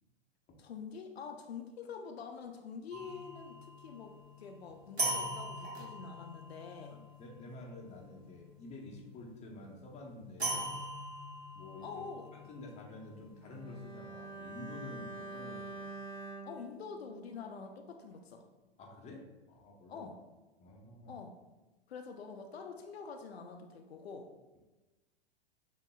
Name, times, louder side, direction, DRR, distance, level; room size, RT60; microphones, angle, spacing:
voice 1, 0.6-7.0 11.8-12.3 16.4-18.4 19.9-20.2 21.1-21.3 21.9-24.3, left 5 dB, 75° left, 5 dB, 0.5 m, -46 dB
sound 1, 2.9-9.1 10.4-14.4, right 1 dB, 90° right, 1.1 m, -42 dB
voice 2, 7.2-10.8 11.5-12.0 12.3-15.9 18.8-20.1 20.6-21.1, left 2 dB, 20° left, 0 dB, 0.7 m, -49 dB
Bowed string instrument, 13.4-17.8 18.1-18.3, right 3 dB, 25° right, 0.6 m, -47 dB
6.5 x 2.7 x 2.2 m, 1.1 s
figure-of-eight pair, 100°, 31 cm